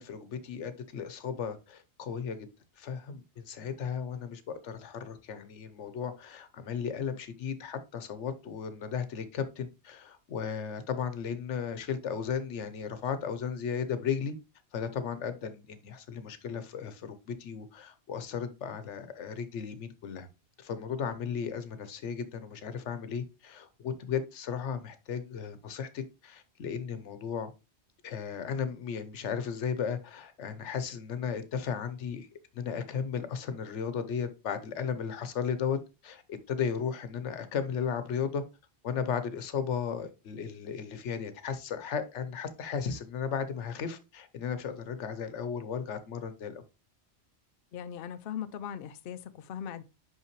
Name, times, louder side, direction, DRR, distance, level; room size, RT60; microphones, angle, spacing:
voice 1, 0.0-2.5 2.8-14.3 14.7-20.3 20.6-27.5 28.0-32.3 32.5-35.8 36.0-38.4 38.8-46.6, left 7 dB, 85° left, 1.1 m, -35 dB
voice 2, 47.7-49.8, left 9 dB, 60° left, 0.7 m, -39 dB
5.7 x 5.7 x 3.0 m
omnidirectional pair, 1.2 m